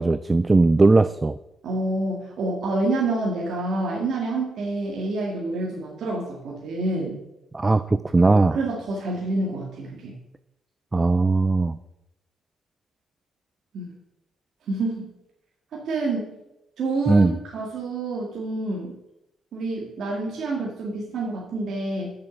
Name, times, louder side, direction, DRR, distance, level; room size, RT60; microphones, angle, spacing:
voice 1, 0.0-1.4 7.5-8.6 10.9-11.8 17.1-17.4, right 3 dB, 20° right, 14 dB, 0.3 m, -19 dB
voice 2, 1.6-7.2 8.3-10.1 13.7-13.9 14.7-15.1 15.7-16.4 16.8-19.0 19.5-22.1, right 2 dB, 65° right, -3 dB, 2.0 m, -28 dB
6.9 x 6.6 x 7.1 m, 0.90 s
cardioid pair, 90°, 0 cm